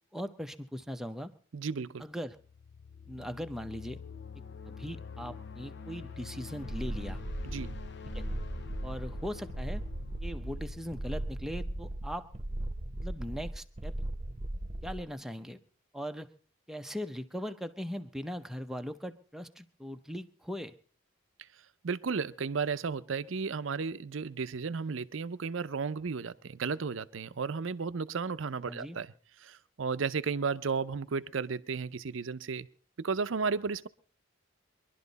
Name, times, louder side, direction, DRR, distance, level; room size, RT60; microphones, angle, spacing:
voice 1, 0.1-1.3 2.0-2.4 3.1-4.0 4.6-7.2 8.1-8.3 8.8-9.8 10.2-12.3 13.0-13.9 14.8-15.6 15.9-16.3 16.7-20.8 28.7-29.0, equal, ahead, 7 dB, 0.8 m, -39 dB
voice 2, 1.5-2.0 7.5-7.8 21.8-29.1 29.4-32.7 33.0-33.9, right 5 dB, 70° right, 14 dB, 0.6 m, -33 dB
sound 1, 2.3-13.1, left 5 dB, 60° left, 0.7 m, -47 dB
sound 2, 6.6-15.1, right 1 dB, 30° right, 0.9 m, -37 dB
23.0 x 11.5 x 4.0 m, 0.42 s
head